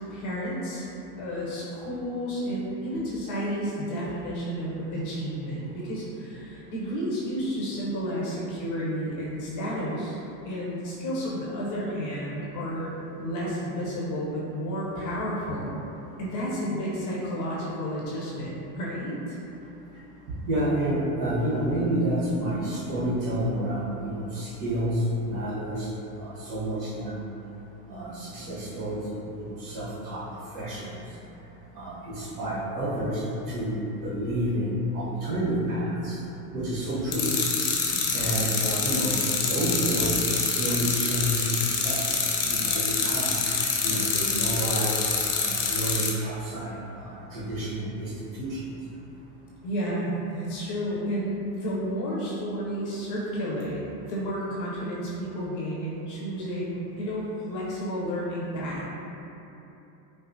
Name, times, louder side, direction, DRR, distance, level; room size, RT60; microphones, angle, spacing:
voice 1, 0.1-0.9 1.2-12.9 13.2-15.8 16.2-19.4 37.9-38.2 49.6-58.9, equal, 40° left, -7 dB, 0.9 m, -31 dB
voice 2, 20.5-25.9 26.2-27.2 27.9-30.2 30.5-31.0 31.7-36.2 36.5-37.4 38.1-43.3 43.6-45.1 45.4-48.8, right 1 dB, 40° right, -8 dB, 1.3 m, -29 dB
sound 1, 37.1-46.1, left 5 dB, 75° left, 0.8 m, -26 dB
4.8 x 2.0 x 2.6 m, 3.0 s
hypercardioid pair, 105°, 48 cm